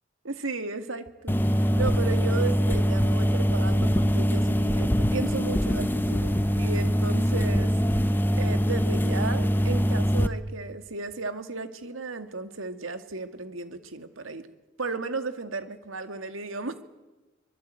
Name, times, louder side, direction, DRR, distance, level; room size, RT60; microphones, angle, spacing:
voice 1, 0.2-7.7 8.0-14.5 14.8-16.8, right 3 dB, 85° right, 8 dB, 2.2 m, -34 dB
sound 1, 1.3-10.3, equal, 10° left, 1.0 m, -23 dB
24.5 x 23.0 x 9.2 m, 1.1 s
head